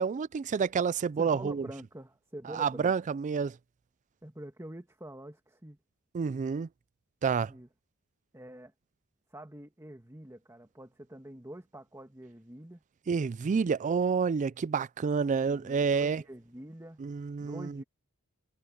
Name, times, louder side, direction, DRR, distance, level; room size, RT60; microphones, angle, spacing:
voice 1, 0.0-1.6 2.5-3.5 6.1-6.7 7.2-7.5 13.1-16.2 17.0-17.7, right 5 dB, 35° right, 0.3 m, -29 dB
voice 2, 1.2-2.9 4.2-5.8 7.4-7.7 8.3-8.7 9.3-12.8 15.4-17.0 17.4-17.8, right 1 dB, 15° right, 2.1 m, -46 dB
head